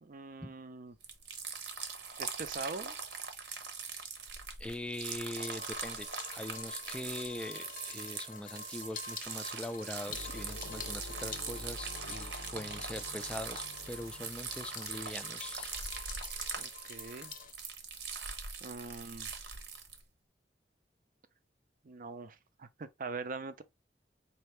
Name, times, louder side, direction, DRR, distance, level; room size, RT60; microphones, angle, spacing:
voice 1, 0.0-0.9 2.2-2.9 16.6-17.3 18.6-19.3 21.8-23.6, right 4 dB, 50° right, 0.5 m, -43 dB
sound 1, 1.0-20.0, right 6 dB, 75° right, 0.9 m, -42 dB
voice 2, 4.6-15.7, left 1 dB, 5° left, 0.4 m, -42 dB
sound 2, 5.4-17.5, left 6 dB, 50° left, 0.6 m, -48 dB
sound 3, 10.1-16.6, left 1 dB, 90° left, 0.7 m, -48 dB
4.4 x 2.8 x 3.1 m
head